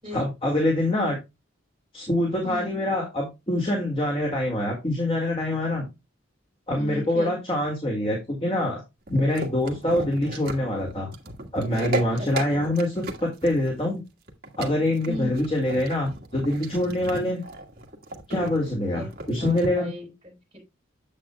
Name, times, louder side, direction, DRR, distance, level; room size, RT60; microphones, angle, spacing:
voice 1, 0.1-1.2 1.9-5.9 6.7-8.8 9.1-11.1 11.5-14.0 14.6-17.4 18.3-19.9, left 1 dB, 30° left, 0 dB, 2.1 m, -25 dB
voice 2, 2.4-2.8 6.7-7.4 12.2-12.7 15.1-15.4 18.9-19.1 19.4-20.7, equal, 25° right, -1 dB, 4.1 m, -37 dB
sound 1, 9.1-19.7, right 1 dB, 50° right, 1.6 m, -35 dB
8.8 x 8.0 x 2.2 m, 0.23 s
head